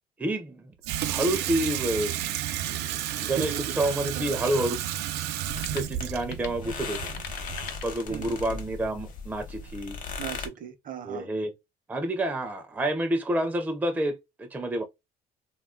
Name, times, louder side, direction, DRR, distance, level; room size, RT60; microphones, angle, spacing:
voice 1, 0.2-0.7 1.1-2.4 2.9-4.8 5.7-7.2 7.8-10.0 11.0-11.5 11.9-14.8, right 1 dB, 10° right, 0.4 m, -29 dB
Water tap faucet / Sink (filling or washing), 0.8-7.9, right 12 dB, 80° right, 0.4 m, -32 dB
voice 2, 2.6-3.7 4.1-4.3 8.1-8.6 10.2-11.3, right 8 dB, 55° right, 0.7 m, -38 dB
sound 1, 5.5-8.5, left 8 dB, 85° left, 0.5 m, -46 dB
sound 2, 5.5-10.5, left 4 dB, 50° left, 0.8 m, -38 dB
2.4 x 2.2 x 3.6 m
cardioid pair, 110°, 17 cm